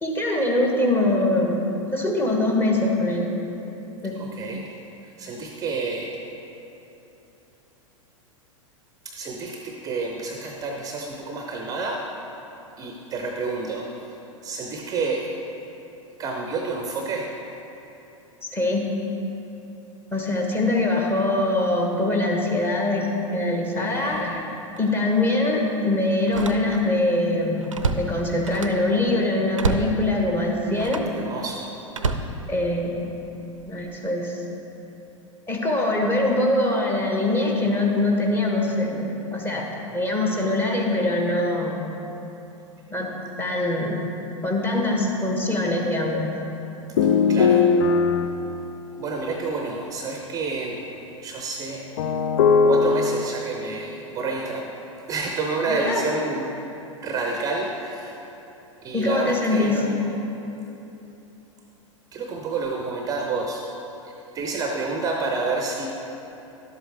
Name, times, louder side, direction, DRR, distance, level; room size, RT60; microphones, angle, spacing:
voice 1, 0.0-1.6 1.9-3.3 4.0-4.2 18.5-18.8 20.1-24.5 24.8-27.7 28.0-31.1 32.5-33.1 33.7-34.4 35.5-39.7 39.9-41.8 42.9-43.1 43.4-44.0 44.4-46.3 55.7-56.1 58.9-59.8, left 2 dB, 10° left, -1 dB, 1.1 m, -23 dB
voice 2, 4.2-4.6 5.2-6.1 9.0-12.0 12.8-14.1 14.4-15.3 16.2-17.3 23.7-24.2 31.2-31.8 47.0-47.7 48.9-50.8 51.2-51.9 52.6-54.7 55.1-56.4 57.0-58.2 58.8-60.1 62.1-63.6 64.3-65.9, right 3 dB, 20° right, 1 dB, 0.7 m, -29 dB
Slam, 24.0-24.3 24.8-24.9 26.2-27.0 27.4-28.9 29.5-30.0 30.7-31.2 31.9-33.0 33.6-33.9, right 4 dB, 75° right, 0.6 m, -29 dB
sound 1, 46.1-46.4 47.0-48.3 52.0-53.2, left 5 dB, 50° left, 0.5 m, -19 dB
11.5 x 7.8 x 3.4 m, 3.0 s
figure-of-eight pair, 95°, 17 cm